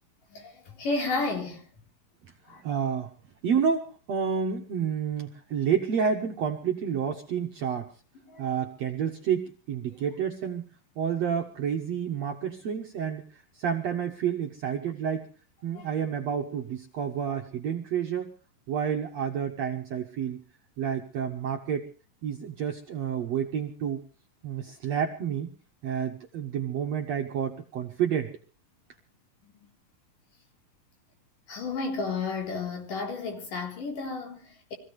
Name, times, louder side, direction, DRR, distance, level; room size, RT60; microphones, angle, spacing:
voice 1, 0.3-1.7 2.5-2.6 8.3-8.5 9.8-10.0 15.7-15.9 29.4-29.7 31.5-34.7, left 3 dB, 60° left, 5.3 m, -32 dB
voice 2, 2.6-3.1 3.4-7.9 8.4-10.6 11.0-13.2 13.6-15.3 15.6-18.3 18.7-20.4 20.8-21.9 22.2-24.0 24.4-25.5 25.8-28.3, right 7 dB, 60° right, 1.9 m, -29 dB
25.0 x 16.5 x 3.3 m
omnidirectional pair, 4.4 m